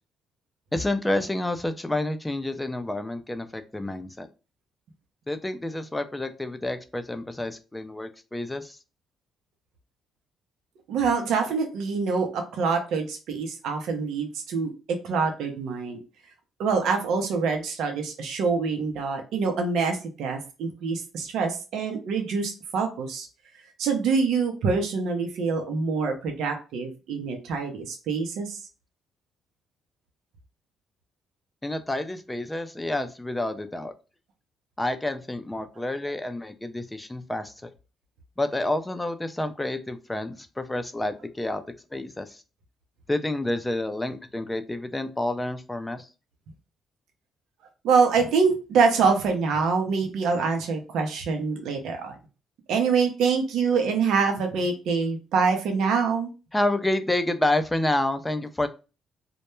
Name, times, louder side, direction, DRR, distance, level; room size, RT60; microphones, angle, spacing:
voice 1, 0.7-4.3 5.3-8.8 31.6-33.9 34.8-37.7 38.4-41.6 41.9-42.4 43.1-46.1 56.5-58.7, left 1 dB, 15° left, 8 dB, 0.4 m, -29 dB
voice 2, 10.9-14.7 15.0-16.0 16.6-23.3 23.8-28.6 47.8-52.2 52.7-56.3, right 5 dB, 75° right, 4 dB, 0.6 m, -25 dB
2.1 x 2.1 x 3.0 m, 0.32 s
supercardioid pair, 75°, 0 cm